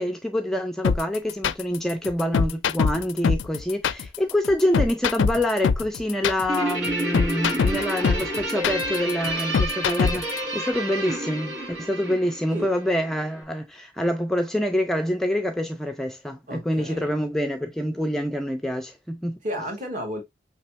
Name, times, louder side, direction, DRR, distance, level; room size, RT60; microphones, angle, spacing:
voice 1, 0.0-19.4, equal, ahead, 0.4 m, -26 dB
sound 1, 0.8-10.4, left 6 dB, 80° left, 0.4 m, -23 dB
Guitar, 6.5-13.2, right 1 dB, 75° right, 1.8 m, -30 dB
voice 2, 16.5-17.2 19.4-20.2, equal, 40° right, 1.7 m, -32 dB
5.6 x 3.2 x 2.8 m
head